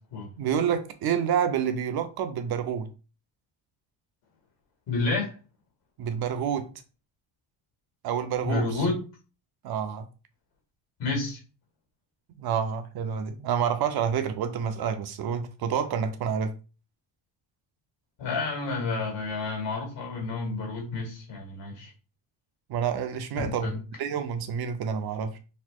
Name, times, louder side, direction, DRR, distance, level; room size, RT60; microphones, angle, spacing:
voice 1, 0.4-2.9 6.0-6.7 8.0-8.8 9.6-10.1 12.4-16.5 22.7-25.4, right 7 dB, 55° right, 0.5 m, -28 dB
voice 2, 4.9-5.4 8.4-9.0 11.0-11.4 18.2-21.9 23.4-23.7, left 3 dB, 65° left, 1.8 m, -30 dB
4.1 x 2.8 x 2.3 m
cardioid pair, 115°, 47 cm